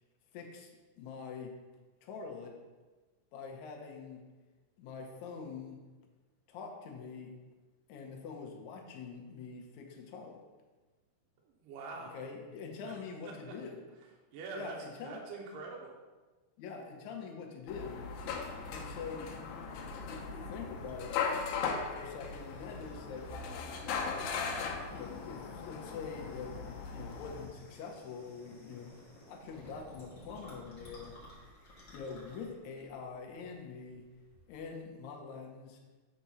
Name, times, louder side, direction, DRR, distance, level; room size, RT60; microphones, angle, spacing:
voice 1, 0.3-0.7 1.0-1.6 2.0-2.6 3.3-4.2 4.8-5.8 6.5-7.4 7.9-10.4 12.0-13.8 14.6-15.2 16.6-18.1 18.7-19.3 19.7-21.2 21.9-23.3 24.9-28.9 29.3-31.2 31.9-34.1 34.5-35.8, left 5 dB, 65° left, 1 dB, 2.0 m, -45 dB
voice 2, 11.4-12.2 12.8-13.0 13.2-13.5 14.3-14.8 15.0-15.9, right 4 dB, 75° right, -1 dB, 2.4 m, -44 dB
sound 1, 17.7-27.5, left 5 dB, 85° left, 2.6 m, -38 dB
sound 2, 18.4-34.7, equal, 40° left, 2.0 m, -56 dB
7.4 x 4.3 x 5.5 m, 1.3 s
omnidirectional pair, 4.1 m